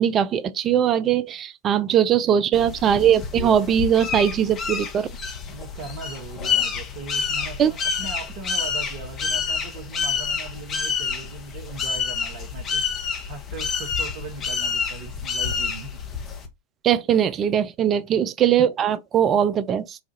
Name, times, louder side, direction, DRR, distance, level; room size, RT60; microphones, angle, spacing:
voice 1, 0.0-5.1 7.6-7.7 16.8-20.0, right 9 dB, 30° right, 0.4 m, -20 dB
voice 2, 2.3-2.7 5.5-12.8 13.3-16.0 17.9-18.1, right 5 dB, 45° right, 0.8 m, -39 dB
sound 1, 2.5-16.5, left 6 dB, 25° left, 0.8 m, -28 dB
4.1 x 2.4 x 2.5 m
figure-of-eight pair, 90°, 0 cm